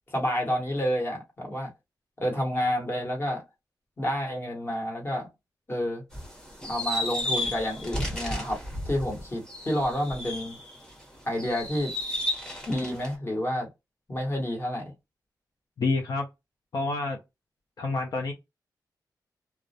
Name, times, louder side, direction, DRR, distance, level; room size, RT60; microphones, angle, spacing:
voice 1, 0.1-1.7 2.2-3.4 4.0-5.3 5.7-6.0 6.6-8.6 8.8-10.6 11.3-11.9 12.7-13.7 14.1-14.9, equal, 30° left, 1.1 m, -29 dB
sound 1, 6.1-10.9 11.4-13.1, left 1 dB, 10° left, 0.9 m, -33 dB
voice 2, 15.8-16.3 16.7-17.2 17.8-18.3, left 3 dB, 60° left, 0.6 m, -28 dB
2.3 x 2.0 x 2.7 m
wide cardioid pair, 105°, 7 cm